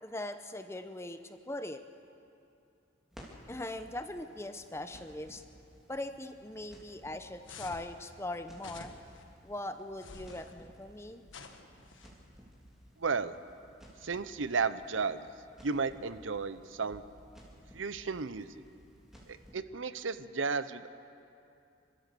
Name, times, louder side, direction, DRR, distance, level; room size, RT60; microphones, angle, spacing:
voice 1, 0.0-1.8 3.5-5.4 5.9-8.9 9.4-11.2, left 1 dB, 15° left, 9 dB, 0.8 m, -40 dB
Crackle, 3.1-19.5, equal, 5° right, 3.0 m, -57 dB
sound 1, 7.4-7.9 8.6-9.2 10.0-10.5 11.3-12.1, left 4 dB, 85° left, 1.5 m, -49 dB
voice 2, 13.0-13.4 14.0-15.3 15.6-17.0 17.7-18.5 19.3-20.9, right 4 dB, 85° right, 13 dB, 0.7 m, -33 dB
29.5 x 13.5 x 6.8 m, 2.6 s
head